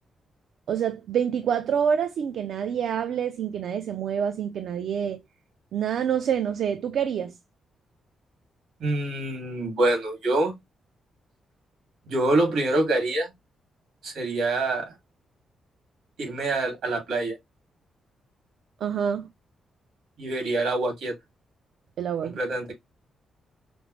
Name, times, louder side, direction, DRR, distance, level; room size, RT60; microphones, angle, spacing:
voice 1, 0.7-5.2 5.7-7.3 18.8-19.3 22.0-22.4, right 8 dB, 70° right, 0.4 m, -27 dB
voice 2, 8.8-10.5 12.1-13.3 14.0-14.9 16.2-17.4 20.2-21.2 22.2-22.7, right 2 dB, 85° right, 2.2 m, -25 dB
5.1 x 2.0 x 2.9 m
wide cardioid pair, 150°, 0 cm